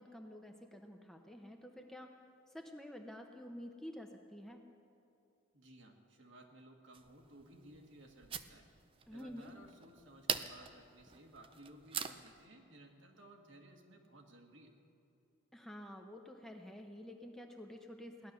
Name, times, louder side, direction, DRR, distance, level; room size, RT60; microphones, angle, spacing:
voice 1, 0.0-2.2 2.5-4.6 9.1-9.5 15.5-18.3, left 1 dB, ahead, 3 dB, 0.7 m, -50 dB
voice 2, 5.5-8.7 9.1-14.7, right 1 dB, 70° right, 2 dB, 1.7 m, -58 dB
sound 1, 6.9-12.5, right 7 dB, 25° right, 0.4 m, -44 dB
16.5 x 11.0 x 6.9 m, 2.9 s
head